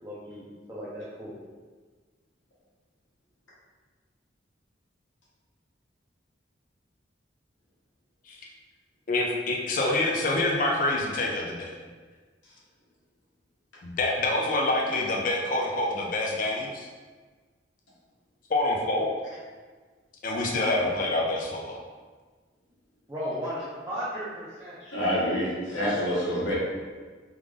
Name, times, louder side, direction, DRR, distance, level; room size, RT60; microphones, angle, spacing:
voice 1, 0.0-1.4 23.1-24.8 26.0-26.3, equal, 15° right, -10 dB, 0.6 m, -36 dB
voice 2, 9.1-11.7 13.8-16.9 18.5-19.1 20.2-21.8, left 2 dB, 45° left, -1 dB, 0.4 m, -26 dB
voice 3, 24.8-26.5, equal, 80° left, -8 dB, 1.3 m, -27 dB
3.5 x 2.5 x 3.3 m, 1.4 s
head